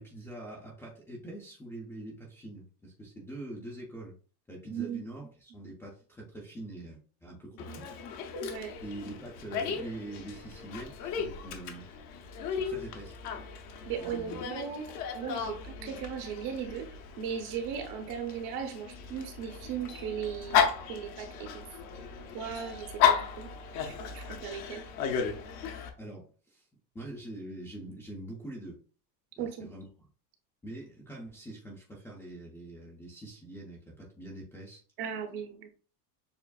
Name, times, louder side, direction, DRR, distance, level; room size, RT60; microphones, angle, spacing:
voice 1, 0.0-4.1 4.5-7.8 8.8-11.9 12.5-13.2 14.0-14.5 26.0-26.7 26.9-28.8 29.4-30.1 30.6-34.8, right 1 dB, 5° left, -6 dB, 0.5 m, -44 dB
voice 2, 4.7-5.0 7.7-7.8 8.4-8.7 13.9-16.9 17.2-20.6 20.9-21.6 22.3-23.5 23.8-24.8 29.4-29.7 35.0-35.8, right 8 dB, 45° right, 5 dB, 1.0 m, -37 dB
Dog, 7.6-25.9, left 7 dB, 40° left, 0.8 m, -34 dB
7.0 x 2.5 x 2.4 m, 0.39 s
supercardioid pair, 160°, 48 cm